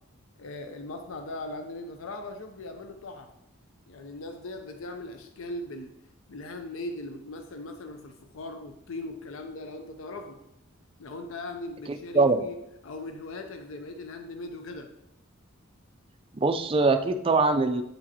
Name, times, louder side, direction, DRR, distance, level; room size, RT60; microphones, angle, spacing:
voice 1, 0.4-3.3 3.9-5.9 6.3-10.4 11.0-12.6 12.8-14.9, left 2 dB, 65° left, 6 dB, 0.5 m, -39 dB
voice 2, 11.9-12.4 16.3-17.8, right 3 dB, 25° right, 8 dB, 0.3 m, -23 dB
7.5 x 4.9 x 2.8 m, 0.82 s
head